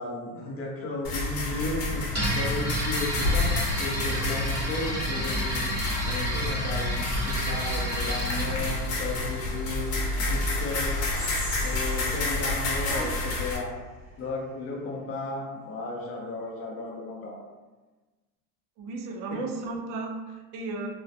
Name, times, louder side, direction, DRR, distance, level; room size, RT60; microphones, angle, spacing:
voice 1, 0.0-3.5 3.8-5.6 6.1-9.9 10.3-11.1 11.6-13.7 14.2-17.4, left 2 dB, 30° left, -3 dB, 0.6 m, -34 dB
sound 1, 1.0-13.6, left 2 dB, 65° left, 0.9 m, -29 dB
sound 2, 2.1-9.9, equal, 20° right, 1.1 m, -31 dB
Whispering, 11.1-14.3, equal, ahead, 0.9 m, -41 dB
voice 2, 18.8-20.9, right 3 dB, 45° right, 1 dB, 0.4 m, -34 dB
2.3 x 2.1 x 2.6 m, 1.2 s
supercardioid pair, 125°, 47 cm